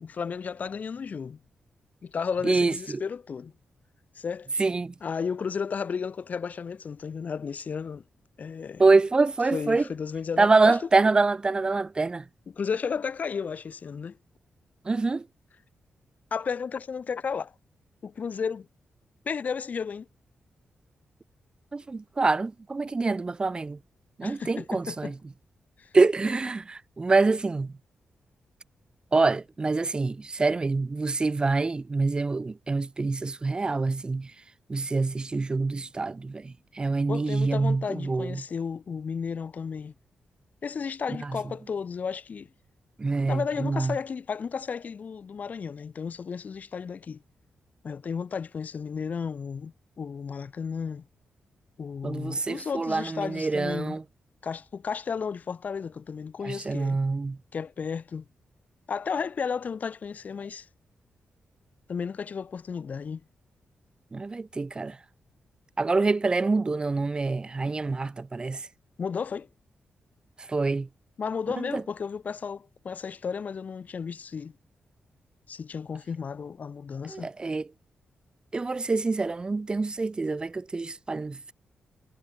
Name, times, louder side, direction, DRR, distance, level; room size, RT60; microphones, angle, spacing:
voice 1, 0.0-1.4 2.0-3.5 4.2-4.5 5.0-8.0 8.4-8.8 9.5-10.8 12.5-14.2 16.3-17.5 18.0-18.7 19.2-20.1 24.2-25.1 25.8-25.9 37.1-39.9 40.6-42.5 43.3-47.2 47.8-51.0 51.8-54.0 54.4-57.0 57.5-58.2 58.9-60.7 61.9-63.2 69.0-69.5 71.2-74.5 75.5-77.3, left 6 dB, 50° left, 4.3 m, -33 dB
voice 2, 2.4-3.0 4.6-4.9 8.8-9.8 10.4-12.2 14.9-15.2 21.7-23.8 24.2-25.1 25.9-27.7 29.1-34.3 34.7-38.4 43.0-43.9 52.0-54.0 56.4-57.4 64.1-65.0 65.8-68.6 70.5-70.9 71.6-71.8 77.1-77.7 78.5-81.5, right 3 dB, 25° right, 1.0 m, -25 dB
wide cardioid pair, 115°, 3 cm